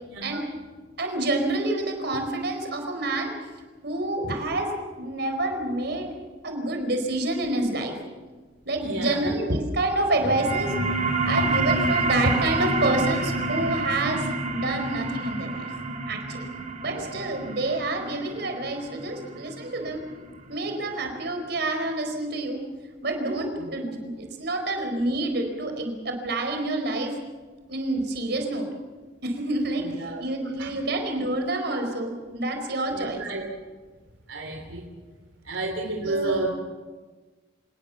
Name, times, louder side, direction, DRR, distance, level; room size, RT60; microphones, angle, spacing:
voice 1, 0.1-0.4 8.8-9.3 16.9-17.1 29.8-30.2 30.6-30.7 32.9-33.5 34.3-34.9 35.4-36.5, right 2 dB, 90° right, 2 dB, 3.3 m, -31 dB
voice 2, 1.0-3.3 3.8-6.1 6.4-7.9 8.6-10.8 11.2-15.7 16.1-16.5 16.8-20.0 20.5-22.6 23.0-27.1 27.7-28.7 29.2-33.2 36.0-36.4, right 2 dB, 60° right, 4 dB, 4.7 m, -28 dB
sound 1, 10.1-21.2, right 2 dB, 40° right, 4.0 m, -28 dB
27.5 x 18.0 x 7.2 m, 1.3 s
head